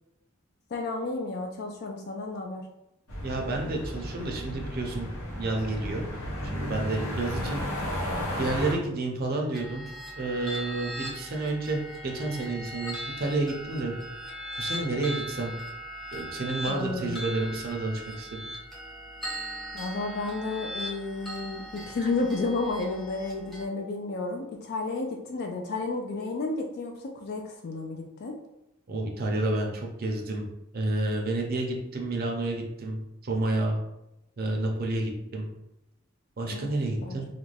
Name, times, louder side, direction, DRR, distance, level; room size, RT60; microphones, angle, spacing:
voice 1, 0.7-2.7 16.7-17.2 19.7-28.4 36.5-36.7 37.0-37.2, left 3 dB, 50° left, 2 dB, 0.3 m, -32 dB
sound 1, 3.1-8.7, equal, 80° left, 0.8 m, -33 dB
voice 2, 3.2-5.1 5.4-6.0 6.4-7.6 8.4-9.8 10.1-13.9 14.6-15.5 16.1-18.4 28.9-30.5 30.7-33.8 34.4-35.5 36.4-37.3, right 2 dB, 45° right, 1 dB, 0.5 m, -30 dB
sound 2, 9.5-23.6, equal, ahead, 0.6 m, -39 dB
2.5 x 2.1 x 3.1 m, 0.87 s
head